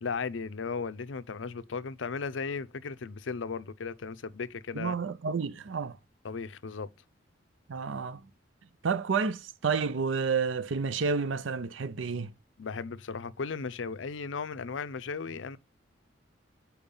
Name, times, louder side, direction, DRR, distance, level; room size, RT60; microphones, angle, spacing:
voice 1, 0.0-4.9 6.2-6.9 12.6-15.6, left 5 dB, 85° left, 0.6 m, -36 dB
voice 2, 4.7-6.0 7.7-8.2 8.8-12.3, right 5 dB, 85° right, 0.6 m, -30 dB
7.0 x 4.7 x 5.3 m
head